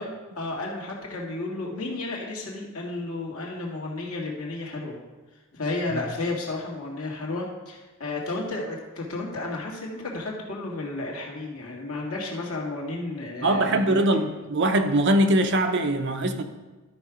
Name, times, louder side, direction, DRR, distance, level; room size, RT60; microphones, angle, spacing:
voice 1, 0.0-5.0 5.5-14.3, left 2 dB, 75° left, -2 dB, 2.0 m, -32 dB
voice 2, 13.4-16.4, right 1 dB, 55° right, 7 dB, 0.7 m, -22 dB
13.0 x 4.7 x 5.1 m, 1.2 s
head